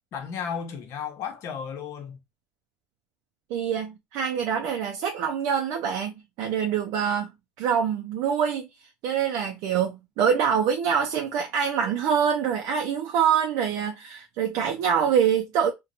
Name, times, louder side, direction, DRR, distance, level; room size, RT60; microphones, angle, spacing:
voice 1, 0.1-2.2, left 7 dB, 65° left, 0.8 m, -34 dB
voice 2, 3.5-7.3 7.6-8.7 9.0-15.7, right 7 dB, 75° right, 0.4 m, -25 dB
2.8 x 2.2 x 2.4 m
supercardioid pair, 85°, 5 cm